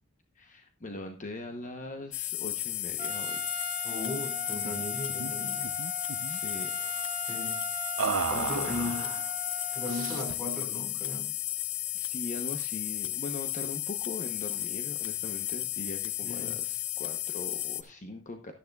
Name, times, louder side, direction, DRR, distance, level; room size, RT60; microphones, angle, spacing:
voice 1, 0.3-3.6 6.2-6.9 11.9-18.5, left 2 dB, 40° left, 5 dB, 0.9 m, -41 dB
sound 1, 2.1-17.8, left 14 dB, 70° left, 0.8 m, -34 dB
Trumpet, 3.0-10.3, right 4 dB, 30° right, 0.8 m, -40 dB
voice 2, 3.8-5.7 7.3-7.6 8.3-9.2 9.7-11.3 16.2-16.6, left 1 dB, ahead, 0 dB, 4.7 m, -37 dB
sound 2, 4.6-4.8 5.1-5.3 5.6-6.4 8.0-9.2 9.9-10.5, right 6 dB, 70° right, 0.6 m, -34 dB
12.0 x 10.5 x 2.3 m, 0.36 s
head